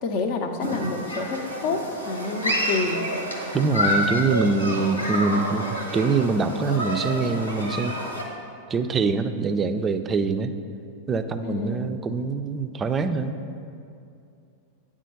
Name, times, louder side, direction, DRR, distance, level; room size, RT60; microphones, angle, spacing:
voice 1, 0.0-3.0 11.4-11.9, left 4 dB, 45° left, 6 dB, 0.7 m, -28 dB
Human group actions, 0.6-8.2, equal, 85° left, 1.3 m, -29 dB
voice 2, 3.5-5.7 5.9-8.0 8.7-10.5 11.1-13.3, right 4 dB, 20° right, 9 dB, 0.4 m, -24 dB
9.1 x 3.7 x 6.4 m, 2.5 s
figure-of-eight pair, 90°, 0 cm